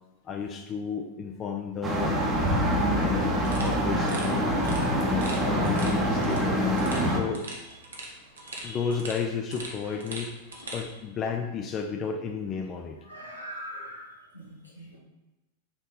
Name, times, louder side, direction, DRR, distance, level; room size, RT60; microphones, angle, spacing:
voice 1, 0.2-2.2 2.7-4.5 5.0-6.7 7.0-7.5 8.6-10.4 10.7-13.0, left 6 dB, 30° left, 4 dB, 0.3 m, -33 dB
sound 1, 1.8-7.2, equal, 20° right, 0.8 m, -25 dB
sound 2, 3.4-10.9, right 2 dB, 70° right, 0.8 m, -42 dB
voice 2, 8.4-8.8 13.1-14.1 14.3-15.0, equal, 85° left, -3 dB, 1.0 m, -41 dB
4.5 x 2.8 x 3.8 m, 1.0 s
figure-of-eight pair, 90°, 0 cm